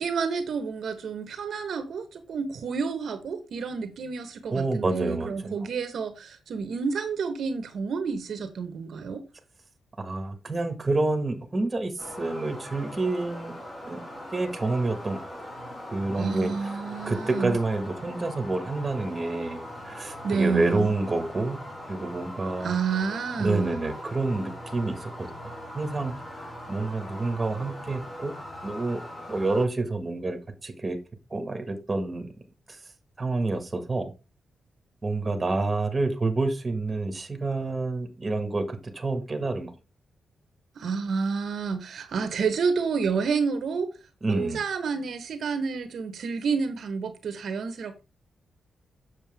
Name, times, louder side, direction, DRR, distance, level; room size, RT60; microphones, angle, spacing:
voice 1, 0.0-9.2 16.1-17.6 20.2-20.9 22.6-23.7 40.7-43.9 44.3-48.0, right 5 dB, 65° right, 1.0 m, -29 dB
voice 2, 4.5-5.5 10.0-13.6 13.8-15.3 15.9-16.7 17.0-21.6 21.9-22.7 23.4-25.3 25.7-26.1 26.7-28.3 28.6-29.0 29.3-31.0 31.3-32.3 33.2-34.1 35.0-39.7 44.2-44.6, right 2 dB, 20° right, 1.6 m, -28 dB
sound 1, 12.0-29.7, left 1 dB, 25° left, 3.1 m, -41 dB
7.3 x 6.5 x 3.5 m
wide cardioid pair, 160°, 0 cm